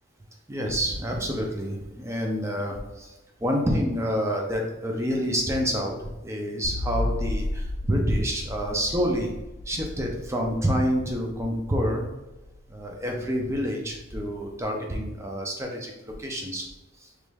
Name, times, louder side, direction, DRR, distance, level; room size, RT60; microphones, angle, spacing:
voice 1, 0.5-3.1 3.4-6.0 6.2-9.3 9.7-12.0 12.7-16.7 17.0-17.1, equal, 10° right, 1 dB, 0.4 m, -28 dB
sound 1, 6.6-13.8, left 1 dB, 80° left, 0.5 m, -34 dB
4.9 x 3.1 x 2.3 m, 1.1 s
head